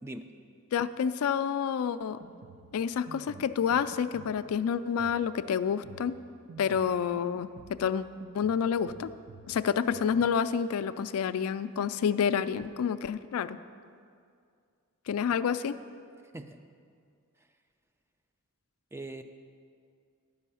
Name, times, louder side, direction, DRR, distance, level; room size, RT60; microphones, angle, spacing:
voice 1, 0.0-0.3 16.3-16.6 17.4-17.5 18.9-19.2, right 2 dB, 10° right, 7 dB, 0.3 m, -41 dB
voice 2, 0.7-2.2 2.7-6.2 6.6-8.1 8.3-9.1 9.5-13.6 15.1-15.8, left 7 dB, 80° left, 13 dB, 0.3 m, -29 dB
Drum kit, 2.0-10.3, right 5 dB, 75° right, 0.5 m, -51 dB
10.5 x 5.5 x 6.9 m, 2.3 s
head